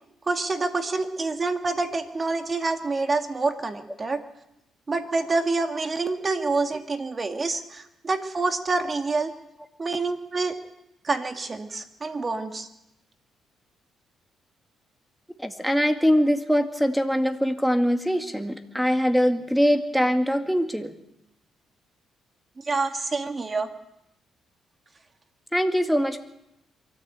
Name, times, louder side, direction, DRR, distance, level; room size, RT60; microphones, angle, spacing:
voice 1, 0.3-4.2 4.9-9.3 9.8-10.6 11.0-12.7 22.6-23.7, right 3 dB, 30° right, 6 dB, 2.2 m, -27 dB
voice 2, 15.4-20.9 25.5-26.2, equal, ahead, 7 dB, 2.0 m, -22 dB
23.5 x 14.0 x 8.3 m, 0.84 s
cardioid pair, 90°, 0 cm